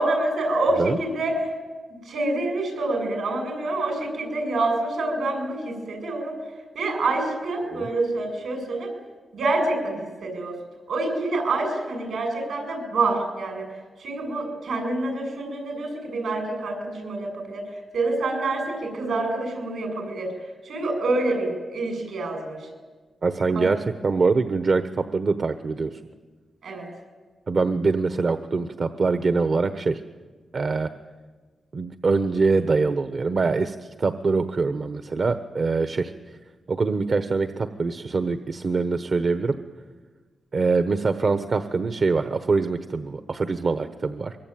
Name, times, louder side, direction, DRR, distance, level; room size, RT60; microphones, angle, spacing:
voice 1, 0.0-1.5 1.9-6.4 6.7-8.9 9.3-10.6 10.9-13.7 14.0-22.7 23.5-23.7 26.6-26.9, right 2 dB, 80° right, 4 dB, 7.7 m, -27 dB
voice 2, 23.2-26.0 27.5-30.0 30.5-30.9 31.7-36.1 36.7-39.6 40.5-44.4, right 4 dB, 50° right, 9 dB, 1.1 m, -24 dB
24.0 x 23.5 x 9.3 m, 1.4 s
cardioid pair, 80°, 0 cm